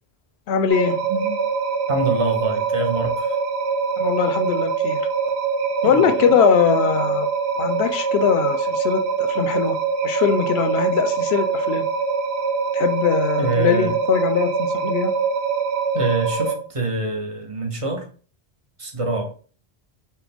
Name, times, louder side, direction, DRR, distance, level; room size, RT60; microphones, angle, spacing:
voice 1, 0.5-1.0 4.0-5.1 5.8-7.3 7.6-9.8 10.0-11.9 12.7-15.1, left 8 dB, 80° left, 0.8 m, -21 dB
sound 1, 0.7-16.5, right 5 dB, 85° right, 0.9 m, -23 dB
voice 2, 1.9-3.4 5.8-6.4 13.4-13.9 15.9-18.1 18.8-19.3, right 2 dB, 35° right, 0.7 m, -25 dB
4.3 x 2.2 x 3.5 m
omnidirectional pair, 1.1 m